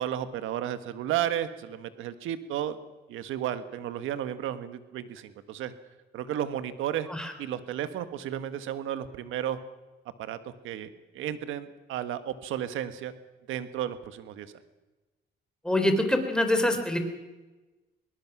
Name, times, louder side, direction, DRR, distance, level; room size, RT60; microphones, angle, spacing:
voice 1, 0.0-2.8 3.1-5.7 6.1-7.1 7.4-9.6 10.2-10.4 10.6-13.1 13.5-14.5, right 10 dB, 90° right, 11 dB, 1.5 m, -33 dB
voice 2, 15.6-17.0, left 1 dB, 5° left, 5 dB, 3.8 m, -25 dB
22.5 x 20.0 x 6.1 m, 1.1 s
cardioid pair, 90°, 20 cm